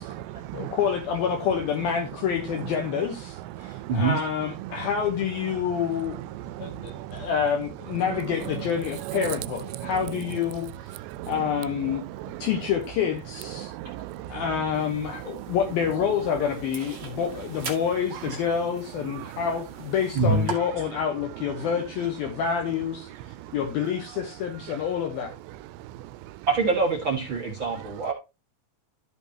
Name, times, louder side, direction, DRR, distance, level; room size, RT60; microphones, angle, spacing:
voice 1, 0.0-0.8 3.6-3.9 6.5-7.3 9.1-9.3 9.8-9.9 11.1-11.3 12.1-12.5 13.6-14.4 15.3-15.6 19.2-19.3, right 14 dB, 90° right, 2.8 m, -37 dB
voice 2, 0.5-6.2 6.6-12.0 12.4-13.7 14.3-25.3, left 7 dB, 70° left, 2.7 m, -28 dB
sound 1, 14.7-20.5, right 5 dB, 35° right, 2.0 m, -42 dB
voice 3, 20.1-20.5 26.5-28.1, right 4 dB, 55° right, 1.4 m, -24 dB
13.5 x 5.3 x 2.8 m
omnidirectional pair, 4.9 m